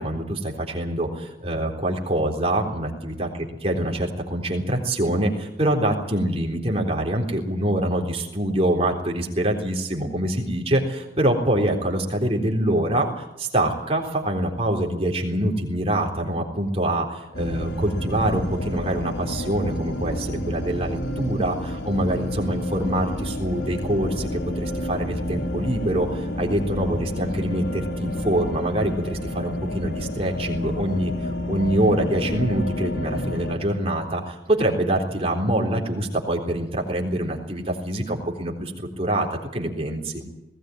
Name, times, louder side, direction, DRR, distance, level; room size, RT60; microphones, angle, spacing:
voice 1, 0.0-40.2, right 1 dB, 35° right, 0 dB, 3.7 m, -25 dB
sound 1, 17.3-33.6, left 1 dB, 90° left, 2.7 m, -30 dB
20.0 x 17.5 x 9.3 m, 0.91 s
head